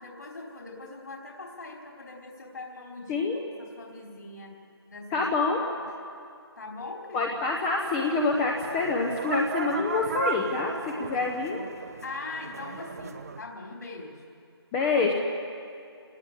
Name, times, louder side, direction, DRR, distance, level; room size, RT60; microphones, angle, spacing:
voice 1, 0.0-4.6 4.9-5.3 5.8-5.9 6.6-7.3 12.0-14.4, left 3 dB, 50° left, 0 dB, 4.0 m, -41 dB
voice 2, 3.1-3.4 5.1-5.6 7.1-10.7 11.0-11.6 14.7-15.1, left 3 dB, 10° left, 1 dB, 1.0 m, -26 dB
Khan El Khalili bazaar, 7.7-13.4, right 5 dB, 35° right, 1.1 m, -36 dB
27.5 x 19.0 x 8.4 m, 2.4 s
figure-of-eight pair, 160°, 14 cm